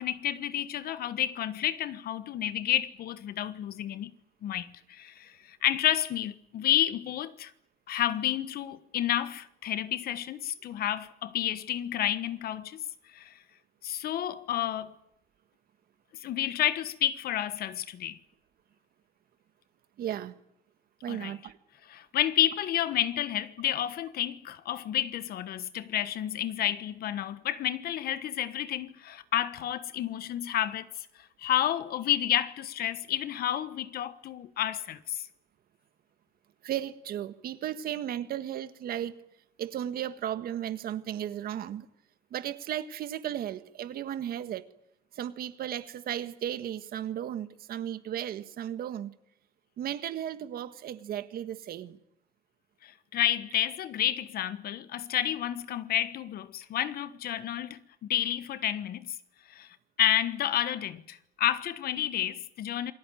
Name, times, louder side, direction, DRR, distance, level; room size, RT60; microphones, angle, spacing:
voice 1, 0.0-4.1 4.4-7.5 7.9-12.8 13.1-13.3 13.8-15.0 16.2-18.2 21.1-21.3 21.9-31.1 31.4-35.2 52.8-59.2 59.5-59.7 60.0-62.9, left 11 dB, 65° left, 1.3 m, -30 dB
voice 2, 20.0-20.3 21.0-21.6 36.6-39.2 39.6-41.9 42.3-44.7 45.1-49.1 49.8-52.0, right 10 dB, 60° right, 1.7 m, -35 dB
27.5 x 19.0 x 9.2 m
cardioid pair, 110°, 17 cm